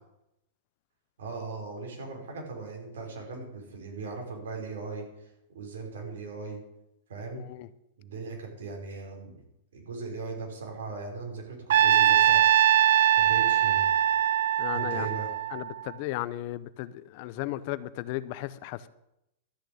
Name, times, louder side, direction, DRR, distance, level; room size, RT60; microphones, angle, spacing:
voice 1, 1.2-6.6 7.1-7.5 8.0-9.3 9.7-12.5 13.2-13.9 14.7-15.3, right 4 dB, 90° right, 4.8 m, -38 dB
voice 2, 7.3-7.7 14.6-15.1 15.5-18.9, left 15 dB, 45° left, 0.6 m, -35 dB
Trumpet, 11.7-15.9, right 11 dB, 70° right, 0.4 m, -22 dB
13.0 x 6.5 x 8.5 m
supercardioid pair, 160°, 0 cm